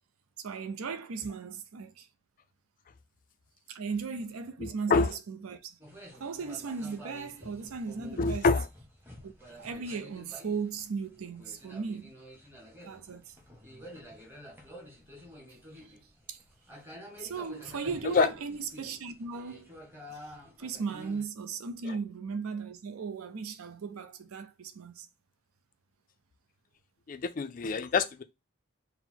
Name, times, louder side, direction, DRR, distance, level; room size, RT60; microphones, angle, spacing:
voice 1, 0.4-2.1 3.7-5.8 6.1-8.5 9.2-9.3 9.6-12.1 12.8-13.4 16.3-16.4 17.2-19.7 20.1-20.2 20.6-25.1, right 5 dB, 85° right, 0.5 m, -37 dB
voice 2, 4.6-5.1 8.2-8.7 18.0-18.3 27.1-28.2, left 4 dB, 40° left, 0.3 m, -26 dB
sound 1, 5.8-21.2, equal, 10° right, 0.8 m, -49 dB
3.9 x 2.0 x 4.3 m
head